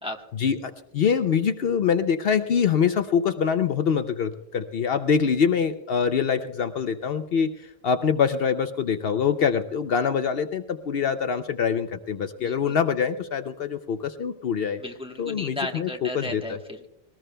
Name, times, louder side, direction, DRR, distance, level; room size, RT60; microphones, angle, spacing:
voice 1, 0.4-14.8 15.2-16.4, left 7 dB, 60° left, 9 dB, 0.8 m, -24 dB
voice 2, 12.4-12.7 14.8-16.9, left 1 dB, 5° right, 2 dB, 1.1 m, -35 dB
22.0 x 19.0 x 2.2 m, 0.81 s
omnidirectional pair, 1.2 m